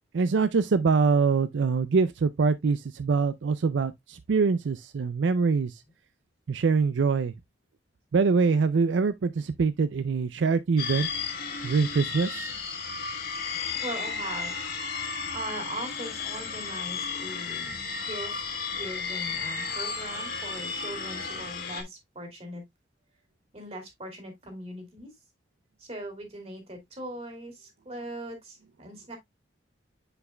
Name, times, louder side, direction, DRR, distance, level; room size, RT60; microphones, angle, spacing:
voice 1, 0.1-5.8 6.5-7.3 8.1-11.1 11.6-12.5, right 5 dB, 80° right, 0.4 m, -24 dB
sound 1, 10.8-21.8, left 5 dB, 50° left, 2.0 m, -33 dB
voice 2, 13.8-14.6 14.9-15.0 15.3-18.4 18.7-22.6 23.5-25.1 25.8-29.2, right 1 dB, 35° right, 2.6 m, -40 dB
7.1 x 6.7 x 2.2 m
head